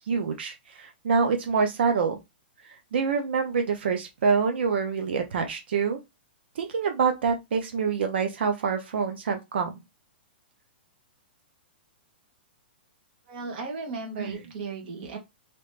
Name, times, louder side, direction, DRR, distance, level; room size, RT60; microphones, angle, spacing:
voice 1, 0.1-2.2 2.9-6.0 6.6-9.7 14.2-14.4, right 5 dB, 75° right, 0.7 m, -26 dB
voice 2, 13.3-15.2, right 4 dB, 55° right, 1.5 m, -35 dB
3.0 x 2.9 x 3.2 m
hypercardioid pair, 155°, 6 cm